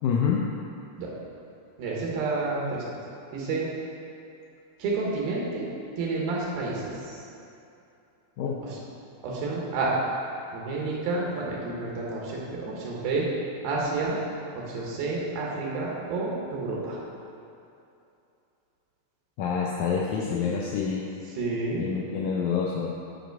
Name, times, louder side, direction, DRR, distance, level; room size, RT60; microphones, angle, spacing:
voice 1, 0.0-0.4 8.4-8.6 19.4-21.1 21.8-23.0, left 6 dB, 90° left, -2 dB, 1.7 m, -27 dB
voice 2, 1.8-2.8 3.3-3.7 4.8-5.7 6.0-6.9 8.6-8.8 9.2-9.9 10.5-13.3 13.6-14.2 14.7-17.0 21.4-21.8, right 3 dB, 90° right, -3 dB, 3.0 m, -29 dB
7.9 x 5.2 x 4.6 m, 2.7 s
omnidirectional pair, 4.2 m